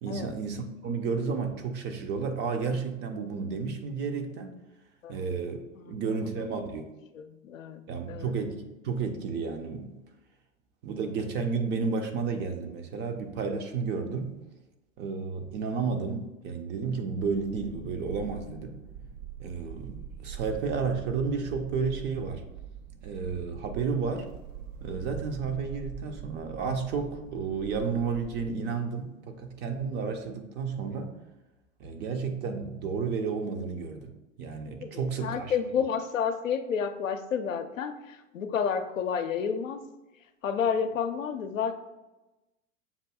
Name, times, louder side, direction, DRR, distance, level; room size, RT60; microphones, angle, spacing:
voice 1, 0.0-4.5 5.1-5.6 5.8-6.8 7.9-9.9 10.8-14.3 15.0-18.8 19.4-22.4 23.0-24.3 24.8-31.1 31.8-35.5, right 5 dB, 30° right, 5 dB, 0.5 m, -32 dB
voice 2, 7.1-8.3 34.8-39.8 40.4-41.7, left 7 dB, 85° left, 7 dB, 0.5 m, -30 dB
sound 1, 17.2-28.5, right 7 dB, 75° right, 0.5 m, -43 dB
6.8 x 2.6 x 2.3 m, 1.0 s
figure-of-eight pair, 90°, 39 cm